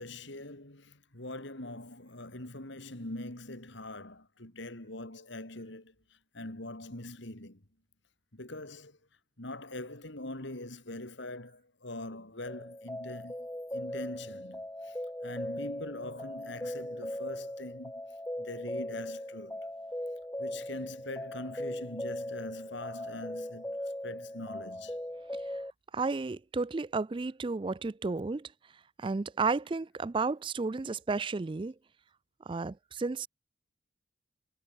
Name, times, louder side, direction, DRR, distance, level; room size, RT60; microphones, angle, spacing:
voice 1, 0.0-5.9 6.3-7.6 8.3-9.0 9.4-13.5 13.7-15.0 15.2-18.0 18.4-19.7 20.4-23.8 24.0-25.0, left 2 dB, 65° left, 3.1 m, -43 dB
sound 1, 12.5-25.7, left 1 dB, 10° left, 1.1 m, -39 dB
voice 2, 25.9-28.5 29.0-31.7 32.5-33.3, right 4 dB, 25° right, 0.3 m, -32 dB
head